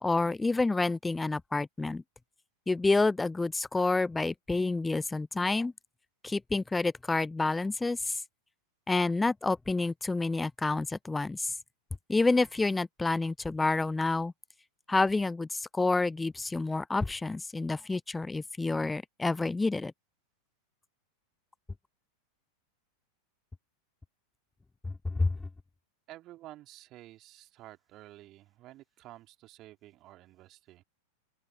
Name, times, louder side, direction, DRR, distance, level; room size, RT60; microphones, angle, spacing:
voice 1, 0.0-2.0 2.7-5.7 6.2-8.2 8.9-11.5 12.1-14.3 14.9-19.9 24.8-25.4, left 3 dB, 10° left, 0.6 m, -28 dB
voice 2, 26.1-30.8, right 15 dB, 35° right, 3.4 m, -51 dB
open air
figure-of-eight pair, 90°, 0 cm